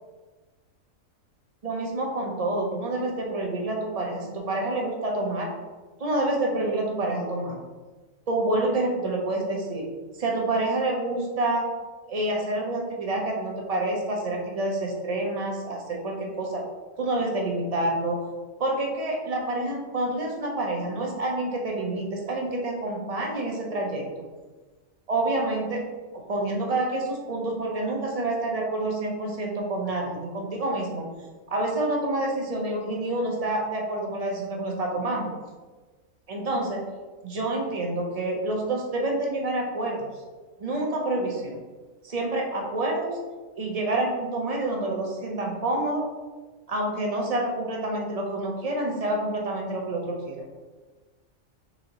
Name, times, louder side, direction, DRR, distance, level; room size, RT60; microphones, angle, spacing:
voice 1, 1.6-5.5 6.0-7.6 8.3-9.9 10.2-11.7 12.1-16.6 17.0-18.2 18.6-24.0 25.1-25.9 26.3-31.1 31.5-35.3 36.3-36.8 37.2-40.0 40.6-41.6 42.0-43.2 43.6-46.1 46.7-50.4, right 2 dB, 40° right, -1 dB, 0.6 m, -28 dB
4.1 x 3.7 x 2.9 m, 1.3 s
omnidirectional pair, 1.4 m